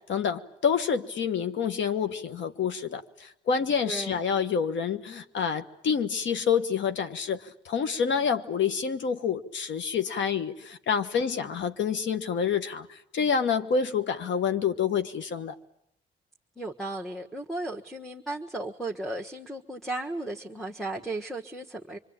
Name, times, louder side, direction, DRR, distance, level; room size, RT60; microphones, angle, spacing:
voice 1, 0.0-15.5, left 6 dB, 70° left, 1.4 m, -28 dB
voice 2, 3.9-4.2 11.1-11.5 16.6-22.0, right 2 dB, ahead, 1.5 m, -35 dB
26.0 x 23.0 x 8.9 m
cardioid pair, 90°, 20 cm